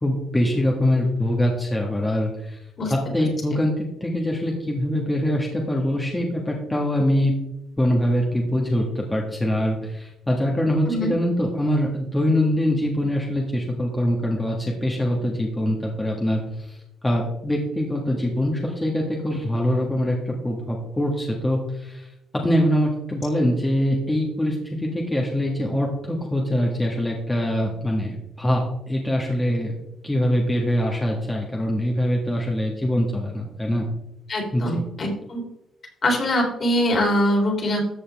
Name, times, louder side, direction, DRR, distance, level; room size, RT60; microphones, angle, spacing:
voice 1, 0.0-2.6 2.9-7.3 7.8-16.8 17.0-22.1 22.4-29.7 30.0-33.9 34.5-34.8, equal, 10° left, -1 dB, 2.0 m, -23 dB
voice 2, 34.3-35.4 36.0-37.8, equal, 45° left, 0 dB, 3.8 m, -23 dB
13.5 x 7.0 x 3.6 m, 0.86 s
cardioid pair, 90°, 0 cm